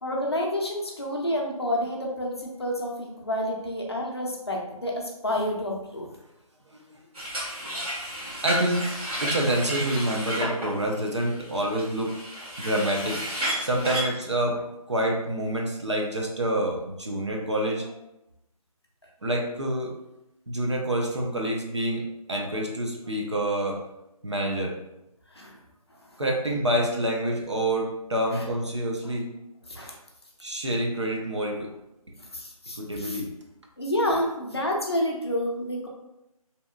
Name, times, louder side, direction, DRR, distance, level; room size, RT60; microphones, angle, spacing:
voice 1, 0.0-6.1 8.0-8.1 25.3-25.6 28.3-28.4 29.7-30.0 32.2-33.2 33.8-35.9, left 1 dB, 45° left, -1 dB, 0.5 m, -29 dB
sound 1, 7.2-14.0, right 1 dB, 75° right, 1.3 m, -32 dB
voice 2, 8.4-12.2 12.6-13.2 13.6-14.6 14.9-18.0 19.2-19.9 20.5-22.0 22.3-23.8 24.2-24.7 26.2-29.2 30.4-31.7 32.8-33.3, right 1 dB, 50° right, 0 dB, 0.5 m, -27 dB
2.8 x 2.1 x 2.3 m, 0.89 s
figure-of-eight pair, 180°, 19 cm